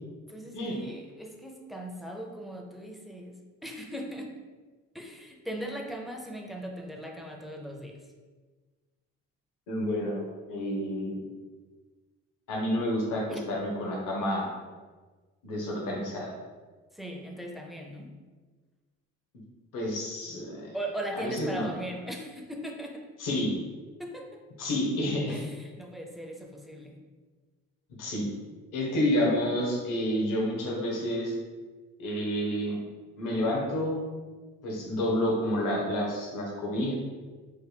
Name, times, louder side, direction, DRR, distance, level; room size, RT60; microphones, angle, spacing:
voice 1, 0.3-4.3 4.9-8.0 13.3-13.4 16.9-18.1 20.7-23.0 24.0-24.4 25.3-27.0, right 1 dB, ahead, 2 dB, 0.4 m, -39 dB
voice 2, 9.7-11.2 12.5-14.5 15.4-16.3 19.7-20.7 21.1-21.7 23.2-23.5 24.6-25.4 28.0-28.3 28.7-31.3 32.0-32.8 33.2-34.0 34.6-36.9, left 1 dB, 65° left, -2 dB, 1.0 m, -29 dB
3.4 x 2.1 x 3.4 m, 1.4 s
supercardioid pair, 70°, 34 cm